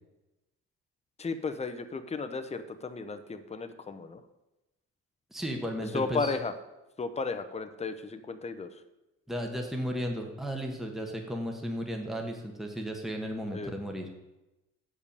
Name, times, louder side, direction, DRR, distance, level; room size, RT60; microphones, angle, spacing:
voice 1, 1.2-4.2 5.9-6.5 7.0-8.7 13.5-13.7, left 4 dB, 20° left, 8 dB, 0.7 m, -34 dB
voice 2, 5.3-6.3 9.3-14.1, equal, ahead, 2 dB, 1.2 m, -34 dB
7.0 x 5.2 x 6.8 m, 1.0 s
cardioid pair, 90°, 30 cm